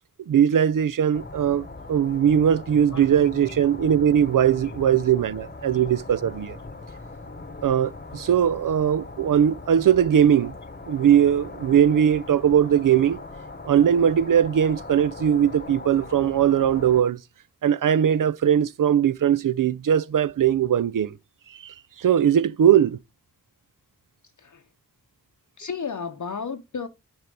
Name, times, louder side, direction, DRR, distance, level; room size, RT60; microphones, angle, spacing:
voice 1, 0.3-6.6 7.6-10.5 10.9-13.2 13.7-17.2 17.6-21.1 21.6-23.0, right 9 dB, 65° right, 0.5 m, -20 dB
sound 1, 1.1-17.0, left 3 dB, 30° left, 1.0 m, -40 dB
voice 2, 25.6-26.9, left 6 dB, 55° left, 0.7 m, -33 dB
9.2 x 4.4 x 5.3 m
cardioid pair, 45°, 36 cm